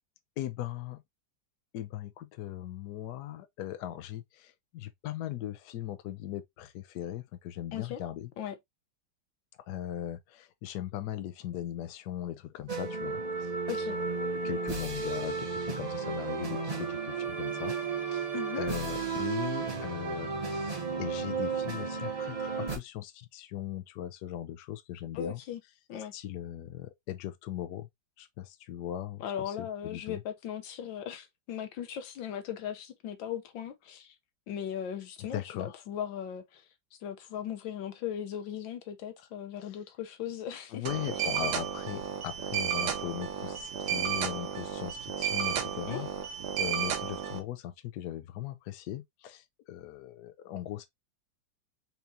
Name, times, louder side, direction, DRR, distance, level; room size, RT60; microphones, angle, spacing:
voice 1, 0.4-1.0 1.7-8.3 9.7-13.5 13.9-18.3 18.6-25.4 26.1-27.9 28.2-30.2 35.3-35.8 40.7-46.1 46.5-50.9, left 12 dB, 70° left, 1.1 m, -39 dB
sound 1, 12.7-22.8, right 5 dB, 25° right, 0.9 m, -33 dB
voice 2, 25.1-25.6 25.9-26.1 29.2-34.1 34.5-36.6 37.0-40.8 45.9-46.0, left 9 dB, 90° left, 1.5 m, -38 dB
sound 2, 40.9-47.4, right 9 dB, 65° right, 1.3 m, -33 dB
4.3 x 3.4 x 2.7 m
omnidirectional pair, 2.0 m